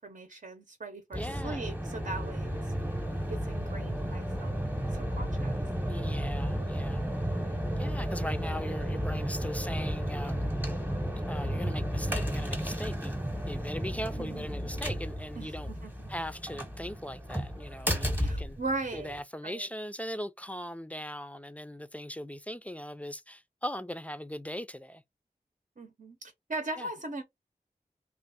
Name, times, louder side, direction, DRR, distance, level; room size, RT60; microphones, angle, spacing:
voice 1, 0.0-2.7 3.3-4.5 4.8-5.6 6.2-6.3 14.2-14.7 15.4-16.1 18.2-19.7 25.8-27.2, right 2 dB, 65° right, 0.9 m, -39 dB
voice 2, 1.1-1.8 5.9-7.0 7.8-10.5 11.3-13.1 13.5-15.7 16.1-18.6 18.9-25.0 26.8-26.9, equal, 10° left, 0.4 m, -39 dB
sound 1, 1.1-19.2, equal, 10° right, 0.9 m, -33 dB
3.2 x 2.4 x 3.4 m
wide cardioid pair, 65°, 15 cm